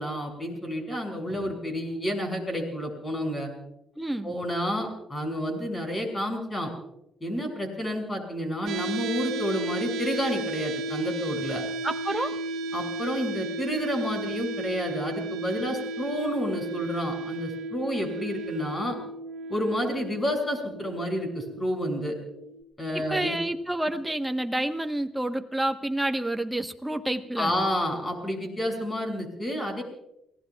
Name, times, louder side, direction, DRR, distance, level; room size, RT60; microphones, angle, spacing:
voice 1, 0.0-3.5 4.2-6.7 7.2-11.6 12.7-19.0 19.5-22.2 22.8-23.4 27.4-29.8, equal, 20° left, 2 dB, 6.4 m, -30 dB
voice 2, 4.0-4.3 11.8-12.3 23.1-27.5, right 1 dB, 10° right, 6 dB, 1.1 m, -29 dB
sound 1, 8.7-22.6, right 2 dB, 70° right, 1.1 m, -34 dB
29.5 x 17.5 x 2.4 m, 0.82 s
cardioid pair, 90°, 0 cm